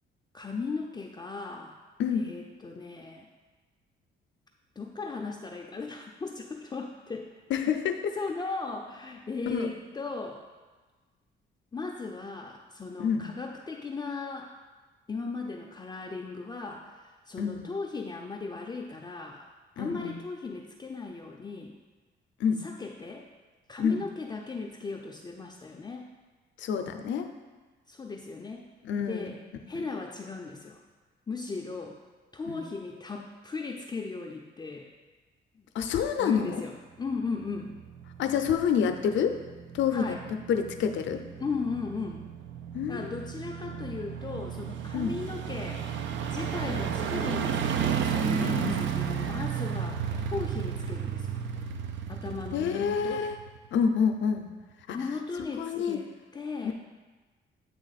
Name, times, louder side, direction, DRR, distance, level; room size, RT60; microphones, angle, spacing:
voice 1, 0.3-1.8 2.1-3.3 4.8-7.3 8.2-10.4 11.7-14.5 15.1-19.4 19.8-21.7 22.6-23.3 23.7-26.1 27.9-28.6 29.1-29.4 29.7-30.8 31.3-32.0 32.3-34.9 36.2-36.7 37.0-37.7 39.9-40.2 41.4-42.2 42.9-45.8 46.3-51.3 52.1-53.2 54.9-56.7, left 4 dB, 20° left, -1 dB, 0.5 m, -37 dB
voice 2, 2.0-2.3 7.5-8.2 9.5-9.7 13.0-13.3 17.4-17.6 19.8-20.2 22.4-22.7 23.8-24.0 26.6-27.3 28.8-29.3 29.7-29.8 32.5-32.6 35.7-36.6 38.2-39.4 39.7-40.2 40.5-41.2 42.7-43.1 44.9-45.2 48.4-48.8 52.5-53.4 53.7-54.4 54.9-55.0 55.6-56.0 56.6-56.7, left 7 dB, 70° left, 6 dB, 0.6 m, -28 dB
sound 1, 37.2-53.8 54.1-54.2, right 7 dB, 70° right, 0.5 m, -33 dB
8.3 x 3.0 x 4.1 m, 1.3 s
cardioid pair, 90°, 20 cm